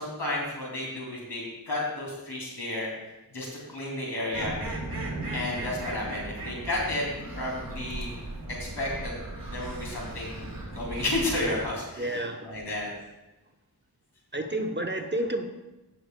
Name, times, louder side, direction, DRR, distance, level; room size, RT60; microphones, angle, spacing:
voice 1, 0.0-2.9 3.3-4.6 5.3-7.0 7.4-8.1 8.6-9.1 9.5-12.9, left 2 dB, 80° left, -3 dB, 2.7 m, -32 dB
sound 1, 4.3-11.6, right 2 dB, 55° right, 2.0 m, -37 dB
voice 2, 12.0-12.6 14.3-15.5, right 1 dB, 25° right, 4 dB, 0.8 m, -30 dB
15.5 x 6.6 x 2.2 m, 1.1 s
wide cardioid pair, 60°, 40 cm